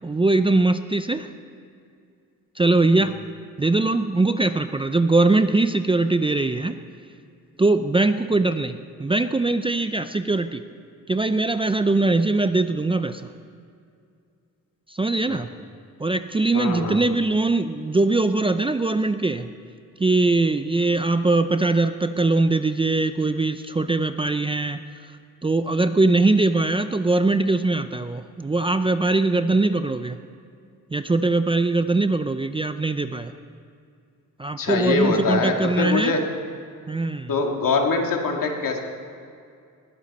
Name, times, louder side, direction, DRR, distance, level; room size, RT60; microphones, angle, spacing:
voice 1, 0.0-1.3 2.6-3.1 3.6-6.8 7.6-10.6 11.1-13.3 14.9-15.5 16.0-19.5 20.0-25.1 25.4-30.2 30.9-33.3 34.4-36.1 36.9-37.3, right 2 dB, 15° right, 10 dB, 0.4 m, -21 dB
voice 2, 16.5-17.0 34.6-36.2 37.3-38.8, left 3 dB, 75° left, 1 dB, 2.2 m, -23 dB
21.0 x 16.0 x 4.2 m, 2.4 s
wide cardioid pair, 140°, 34 cm